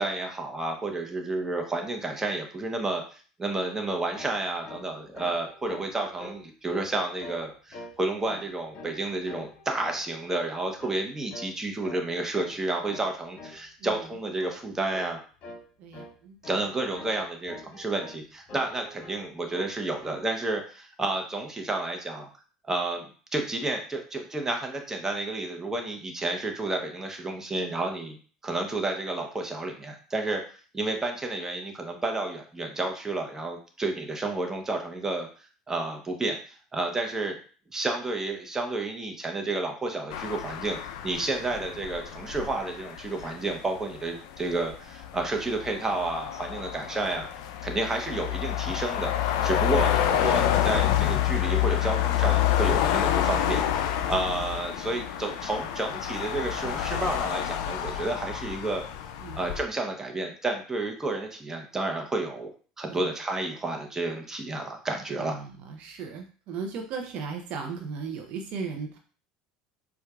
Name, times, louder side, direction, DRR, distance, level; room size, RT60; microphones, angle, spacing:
voice 1, 0.0-3.0 3.4-15.2 16.4-22.3 22.7-28.2 28.4-30.4 30.7-35.3 35.7-36.4 36.7-37.4 37.7-47.3 47.6-49.1 49.4-58.8 59.4-62.5 62.8-65.4, right 2 dB, 15° right, 2 dB, 0.8 m, -31 dB
sound 1, 4.1-4.4 4.6-4.9 5.2-6.4 6.7-6.9 7.2-7.5 7.7-8.0 8.2-9.0 9.3-10.0 10.3-10.5 10.8-11.0 11.3-11.5 11.8-12.0 12.3-12.6 12.9-13.1 13.4-13.6 13.9-14.1 14.4-14.6 14.9-15.2 15.4-15.6 15.9-16.1 16.4-17.2 17.5-18.2 18.5-19.2 19.5-20.3, left 2 dB, 50° left, 1.1 m, -44 dB
voice 2, 13.8-14.1 15.8-16.4 54.3-54.5 59.2-59.4 62.9-63.1 65.1-69.0, right 5 dB, 60° right, 3 dB, 0.5 m, -37 dB
sound 2, 40.1-59.6, left 11 dB, 70° left, 0.4 m, -28 dB
4.5 x 2.3 x 2.3 m, 0.40 s
hypercardioid pair, 80°, 3 cm